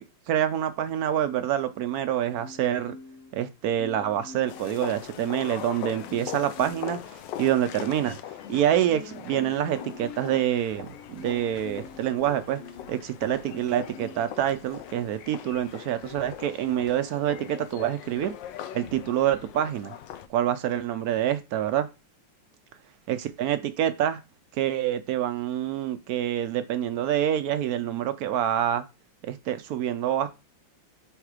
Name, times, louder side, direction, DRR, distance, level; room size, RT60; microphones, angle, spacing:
voice 1, 0.3-3.0 3.3-8.2 8.5-12.6 12.9-18.3 18.7-19.9 20.3-21.9 23.1-24.2 24.5-28.8 29.2-30.3, right 11 dB, 75° right, 10 dB, 0.8 m, -26 dB
Marimba xylophone, 2.4-3.4 3.8-5.6 6.1-7.0 7.5-13.0 13.5-14.3 14.9-15.1, left 4 dB, 50° left, 0.9 m, -46 dB
sound 1, 4.5-20.3, left 11 dB, 75° left, 1.3 m, -41 dB
5.7 x 3.6 x 4.8 m, 0.26 s
omnidirectional pair, 2.1 m